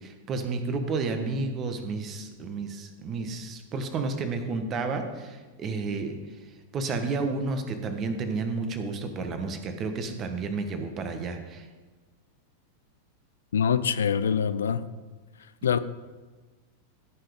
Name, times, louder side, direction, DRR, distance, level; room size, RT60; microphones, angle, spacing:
voice 1, 0.0-6.2 6.7-11.7, right 3 dB, 30° right, 6 dB, 1.5 m, -31 dB
voice 2, 13.5-14.9 15.6-15.8, left 7 dB, 65° left, 14 dB, 0.5 m, -24 dB
16.0 x 6.0 x 5.2 m, 1.3 s
figure-of-eight pair, 90°, 0 cm